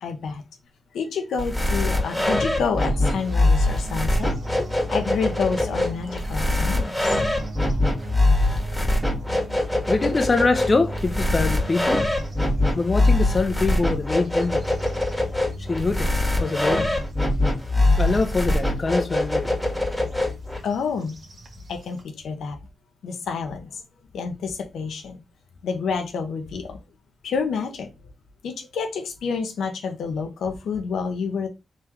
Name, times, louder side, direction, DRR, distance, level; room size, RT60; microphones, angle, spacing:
voice 1, 0.0-0.4 0.9-4.3 4.9-7.2 20.6-21.1 21.7-22.6 23.0-23.8 24.1-25.2 25.6-26.8 27.2-27.9 28.4-31.5, left 5 dB, 80° left, 0.8 m, -28 dB
sound 1, 1.4-20.6, left 2 dB, 5° left, 1.6 m, -23 dB
sound 2, 2.7-22.0, right 3 dB, 60° right, 1.2 m, -39 dB
voice 2, 9.9-12.1 12.7-14.7 15.6-16.9 18.0-19.6, left 3 dB, 40° left, 0.6 m, -24 dB
3.7 x 3.2 x 3.0 m
supercardioid pair, 45°, 0 cm